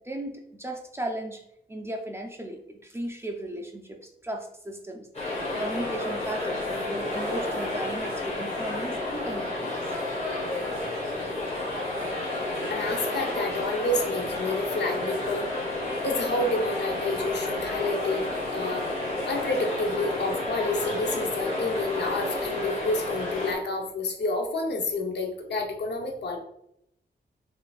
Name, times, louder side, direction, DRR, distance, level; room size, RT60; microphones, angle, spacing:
voice 1, 0.0-1.4 1.7-9.9, right 1 dB, 15° right, 2 dB, 0.5 m, -36 dB
sound 1, 5.1-23.5, left 2 dB, 35° left, 1.4 m, -31 dB
Laughter / Crowd, 6.7-9.3 10.0-10.1, right 2 dB, 85° right, 0.6 m, -42 dB
voice 2, 12.7-15.5 16.0-18.2 18.5-18.9 19.2-26.4, left 2 dB, 70° left, 2 dB, 0.7 m, -29 dB
5.4 x 2.5 x 2.3 m, 0.77 s
wide cardioid pair, 125°, 18 cm